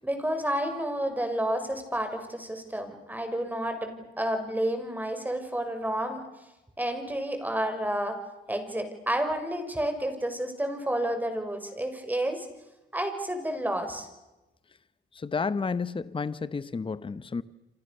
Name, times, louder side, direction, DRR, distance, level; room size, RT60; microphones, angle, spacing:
voice 1, 0.0-6.2 6.8-8.2 8.5-12.5 12.9-14.1, right 1 dB, 10° right, 6.3 m, -30 dB
voice 2, 15.1-17.4, left 5 dB, 25° left, 1.1 m, -31 dB
28.5 x 27.0 x 6.8 m
cardioid pair, 90°, 20 cm